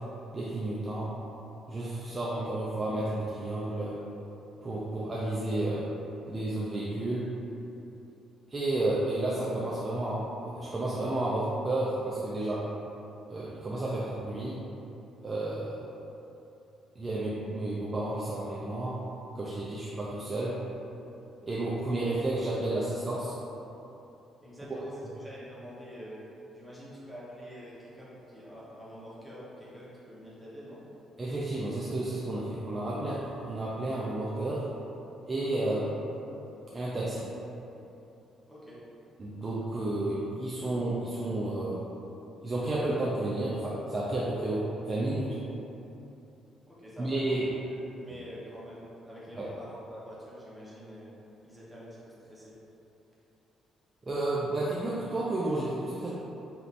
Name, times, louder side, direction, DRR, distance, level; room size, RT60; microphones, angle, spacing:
voice 1, 0.3-1.1 1.7-4.0 4.6-5.9 6.3-7.3 8.5-10.3 10.5-12.6 13.3-14.6 15.2-15.8 17.0-19.0 19.3-20.6 21.4-23.3 24.7-24.8 31.2-34.7 35.3-35.9 36.7-37.3 39.2-41.8 42.4-45.4 47.0-47.5 49.4-49.5 54.1-56.1, right 2 dB, 25° right, -7 dB, 0.5 m, -31 dB
voice 2, 24.4-26.2 26.5-30.8 38.5-38.8 46.7-51.1 51.4-52.5, equal, ahead, -8 dB, 1.0 m, -46 dB
5.1 x 2.9 x 2.6 m, 2.9 s
cardioid pair, 125°, 0 cm